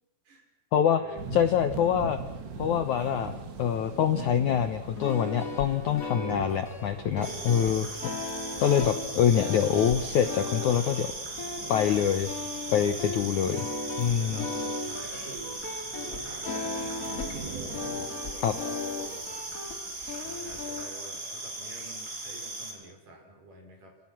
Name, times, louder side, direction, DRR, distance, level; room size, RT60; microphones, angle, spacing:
voice 1, 0.7-1.4 5.3-5.5 7.0-7.7 8.7-8.9 12.7-12.8 13.8-15.6 15.9-19.6 20.1-24.0, right 2 dB, 50° right, 2 dB, 7.3 m, -47 dB
sound 1, 1.1-18.1, right 4 dB, 75° right, 5.0 m, -43 dB
voice 2, 1.3-2.2 2.6-3.3 3.6-7.9 8.6-11.1 11.7-12.3 12.7-13.7 14.0-14.4 18.4-18.5, left 9 dB, 70° left, 9 dB, 1.9 m, -25 dB
sound 2, 4.9-20.9, left 3 dB, 25° left, 2.5 m, -37 dB
sound 3, 7.2-22.7, right 2 dB, 20° right, 5.0 m, -38 dB
29.0 x 27.0 x 6.1 m, 0.93 s
omnidirectional pair, 4.9 m